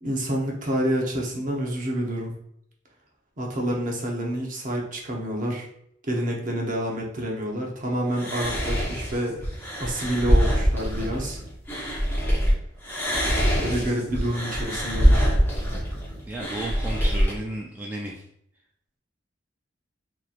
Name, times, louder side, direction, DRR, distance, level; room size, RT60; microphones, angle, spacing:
voice 1, 0.0-2.3 3.4-5.7 6.1-9.5 9.8-11.4 13.6-15.3, right 1 dB, 45° right, -1 dB, 0.8 m, -28 dB
sound 1, 8.1-12.5 12.8-17.3, equal, 10° left, 0.9 m, -24 dB
voice 2, 16.3-18.2, right 1 dB, 10° right, -3 dB, 0.3 m, -33 dB
4.1 x 3.0 x 2.4 m, 0.72 s
head